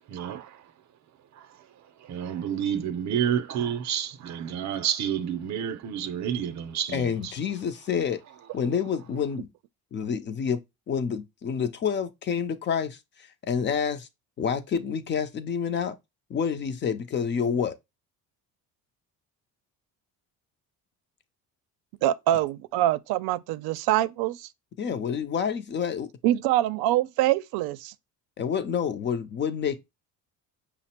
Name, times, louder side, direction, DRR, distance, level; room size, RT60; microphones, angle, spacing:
voice 1, 0.1-0.5 2.1-7.0, right 9 dB, 50° right, 0.6 m, -29 dB
voice 2, 6.9-8.2 8.5-9.5 9.9-14.1 14.4-16.0 16.3-17.8 24.8-26.1 28.4-29.8, left 7 dB, 30° left, 0.4 m, -28 dB
voice 3, 22.0-24.5 26.2-27.9, right 13 dB, 90° right, 0.5 m, -24 dB
5.9 x 2.0 x 4.2 m
cardioid pair, 150°, 36 cm